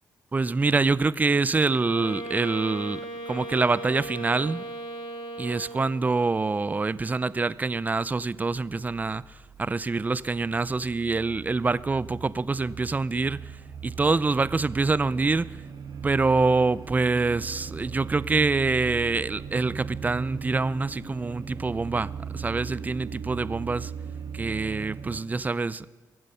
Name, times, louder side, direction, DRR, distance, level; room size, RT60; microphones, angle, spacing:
voice 1, 0.3-3.0 3.3-4.6 5.4-13.5 13.8-15.5 16.0-23.9 24.3-25.9, right 3 dB, 20° right, 0.4 m, -25 dB
Wind instrument woodwind instrument, 1.8-6.2, right 1 dB, 75° left, 2.5 m, -37 dB
sound 1, 8.3-25.2, right 6 dB, 60° right, 1.6 m, -39 dB
23.0 x 7.7 x 5.6 m
cardioid pair, 85°, 7 cm